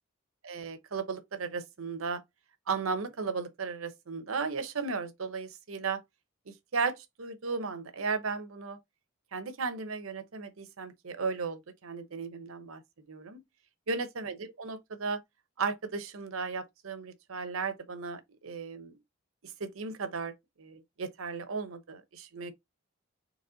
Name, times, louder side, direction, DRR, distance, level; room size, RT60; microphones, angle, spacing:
voice 1, 0.4-2.2 2.7-6.0 6.5-8.8 9.3-13.4 13.9-15.2 15.6-19.0 19.4-22.5, right 4 dB, 80° right, 0.8 m, -35 dB
4.1 x 3.0 x 3.9 m
head